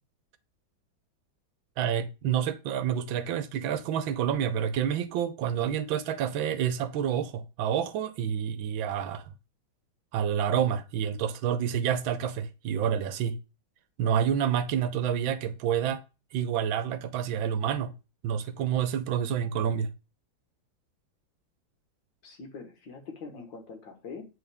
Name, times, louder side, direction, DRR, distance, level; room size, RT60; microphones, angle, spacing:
voice 1, 1.8-9.3 10.1-13.4 14.0-16.0 16.3-17.9 18.2-19.9, right 9 dB, 80° right, 1.5 m, -28 dB
voice 2, 22.2-24.3, left 4 dB, 70° left, 2.2 m, -43 dB
8.8 x 4.1 x 3.5 m
omnidirectional pair, 2.2 m